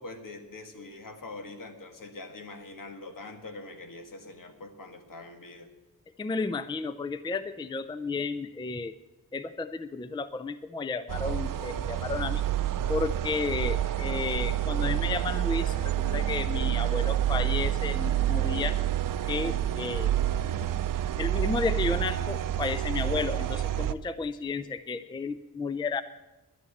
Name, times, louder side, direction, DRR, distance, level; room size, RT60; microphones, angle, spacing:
voice 1, 0.0-5.7, left 2 dB, 65° left, 6 dB, 1.7 m, -43 dB
voice 2, 6.2-8.9 9.3-12.4 12.9-18.8 19.3-20.1 20.4-20.7 21.2-26.0, left 4 dB, 15° left, 13 dB, 0.4 m, -32 dB
sound 1, 11.1-23.9, right 12 dB, 65° right, 0.5 m, -28 dB
11.0 x 9.7 x 7.8 m, 1.1 s
wide cardioid pair, 130°, 36 cm